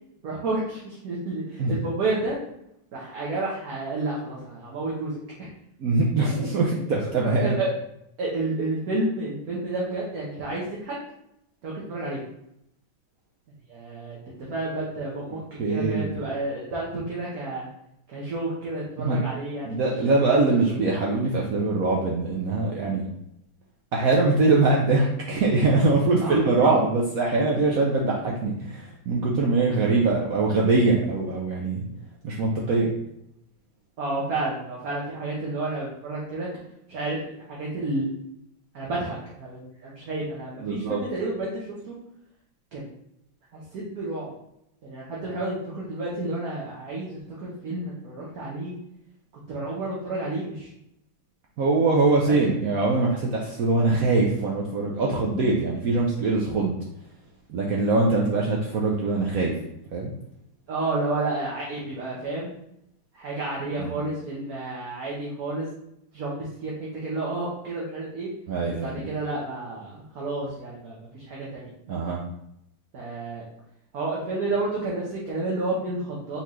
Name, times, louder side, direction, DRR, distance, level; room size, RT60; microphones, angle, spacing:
voice 1, 0.2-2.4 2.9-5.5 6.2-6.9 7.2-7.7 8.2-10.9 11.6-12.2 13.7-14.2 14.5-17.7 18.1-20.1 26.2-26.7 34.0-36.5 36.9-37.2 37.5-38.1 38.7-42.0 42.7-42.9 43.5-44.3 44.8-48.7 49.5-50.7 52.2-52.5 60.7-62.5 63.1-65.7 66.1-68.3 68.8-71.7 72.9-73.4 73.9-76.4, right 2 dB, 55° right, -5 dB, 1.2 m, -30 dB
voice 2, 5.8-7.6 15.6-16.1 19.0-19.2 19.7-23.1 23.9-31.9 32.2-32.9 40.6-41.0 51.6-56.7 57.5-59.5 59.9-60.1 63.8-64.0 68.5-69.0 71.9-72.2, right 3 dB, 85° right, -2 dB, 0.7 m, -23 dB
4.1 x 4.0 x 3.0 m, 0.77 s
omnidirectional pair, 2.2 m